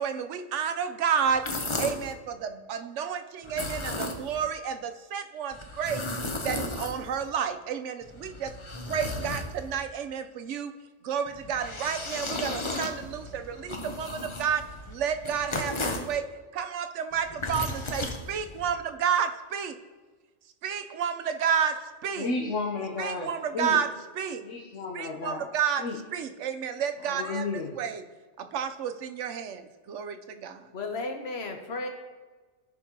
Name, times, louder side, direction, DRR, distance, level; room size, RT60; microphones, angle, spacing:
voice 1, 0.0-6.1 6.4-8.6 8.9-19.8 20.4-22.3 23.0-24.5 24.9-28.1 28.4-30.7, right 7 dB, 80° right, 8 dB, 1.0 m, -31 dB
sound 1, 1.3-2.1 3.4-4.5 5.5-7.3 8.0-9.9 11.3-16.2 17.1-18.8, left 2 dB, 30° left, 0.7 m, -35 dB
voice 2, 22.2-23.3 23.5-23.7 24.4-25.4 25.8-25.9 27.1-27.7, left 3 dB, 90° left, 1 dB, 1.2 m, -32 dB
voice 3, 30.7-31.9, left 2 dB, 65° left, 4 dB, 1.1 m, -34 dB
15.5 x 5.3 x 2.9 m, 1.3 s
omnidirectional pair, 1.2 m